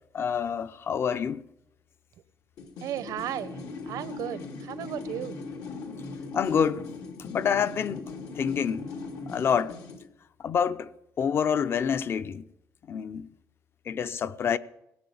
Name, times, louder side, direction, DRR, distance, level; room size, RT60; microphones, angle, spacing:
voice 1, 0.1-1.4 6.3-6.9 7.2-8.9 9.3-9.8 10.4-10.9 11.2-12.4 12.9-13.3 13.9-14.6, left 7 dB, 40° left, 0.6 m, -27 dB
sound 1, 2.6-10.1, left 4 dB, 80° left, 2.1 m, -39 dB
voice 2, 2.8-3.6 3.9-5.4, right 11 dB, 80° right, 0.8 m, -35 dB
18.0 x 8.5 x 8.4 m
cardioid pair, 150°, 6 cm